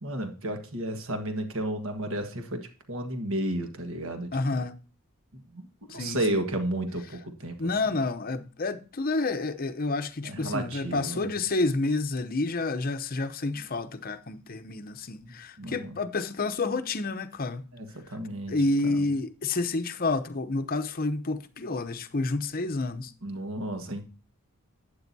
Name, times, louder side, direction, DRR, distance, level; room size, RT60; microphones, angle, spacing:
voice 1, 0.0-4.7 5.3-7.7 10.2-11.3 15.2-16.0 17.7-18.6 18.8-19.0 23.2-24.0, right 1 dB, 65° right, 1.5 m, -33 dB
voice 2, 4.3-4.7 5.9-6.4 7.6-17.6 18.5-23.1, left 3 dB, 40° left, 0.7 m, -29 dB
12.0 x 8.9 x 2.7 m
head